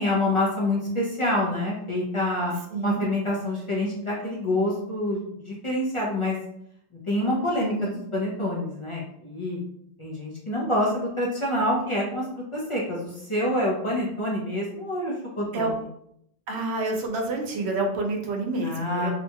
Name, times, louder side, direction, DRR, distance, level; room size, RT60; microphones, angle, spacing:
voice 1, 0.0-2.5 2.8-6.4 7.1-9.6 10.0-15.7 18.6-19.1, left 1 dB, 40° left, -4 dB, 0.5 m, -27 dB
voice 2, 2.7-3.0 7.6-8.0 15.5-15.7 16.5-19.1, right 2 dB, 85° right, 2 dB, 0.9 m, -28 dB
2.8 x 2.2 x 2.7 m, 0.74 s
omnidirectional pair, 1.1 m